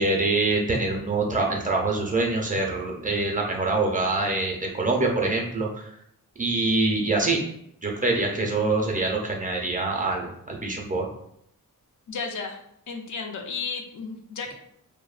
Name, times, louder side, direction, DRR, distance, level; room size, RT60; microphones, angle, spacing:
voice 1, 0.0-5.9 6.4-7.4 7.8-11.1, right 2 dB, 25° right, 0 dB, 0.4 m, -25 dB
voice 2, 12.1-12.6 12.9-14.5, left 5 dB, 55° left, 3 dB, 0.4 m, -33 dB
2.6 x 2.1 x 2.3 m, 0.72 s
cardioid pair, 85°, 36 cm